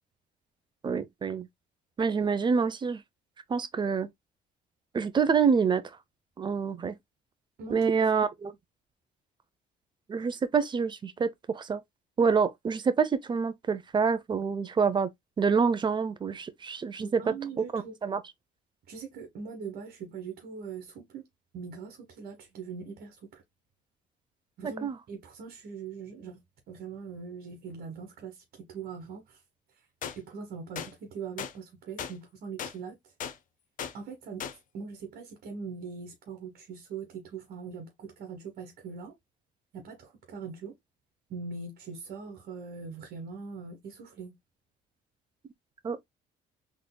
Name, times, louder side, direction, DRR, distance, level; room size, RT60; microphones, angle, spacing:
voice 1, 0.8-1.5 2.0-3.0 3.5-4.1 4.9-5.8 6.4-7.0 7.7-8.5 10.1-11.8 12.2-15.1 15.4-17.2 17.7-18.2 24.8-25.0 45.8-46.1, right 5 dB, 25° right, 0.6 m, -27 dB
voice 2, 7.6-7.9 17.0-18.0 18.9-21.2 21.5-23.4 24.6-29.4 30.2-33.0 33.9-34.5 34.7-39.1 39.7-40.8 41.3-44.4, right 5 dB, 60° right, 1.2 m, -41 dB
sound 1, 30.0-30.2 30.8-30.9 31.4-31.5 32.0-32.1 32.6-32.7 33.2-33.4 33.8-33.9 34.4-34.6, left 8 dB, 50° left, 0.6 m, -36 dB
3.9 x 3.2 x 2.2 m
cardioid pair, 110°, 17 cm